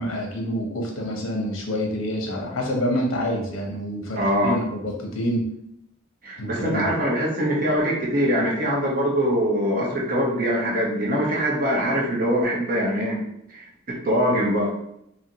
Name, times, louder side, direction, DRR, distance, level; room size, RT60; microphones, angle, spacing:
voice 1, 0.0-5.4 6.4-6.9, equal, 80° left, 0 dB, 0.8 m, -27 dB
voice 2, 4.2-4.6 6.2-13.2 13.5-14.7, equal, 45° right, -3 dB, 0.8 m, -23 dB
2.8 x 2.5 x 2.8 m, 0.77 s
head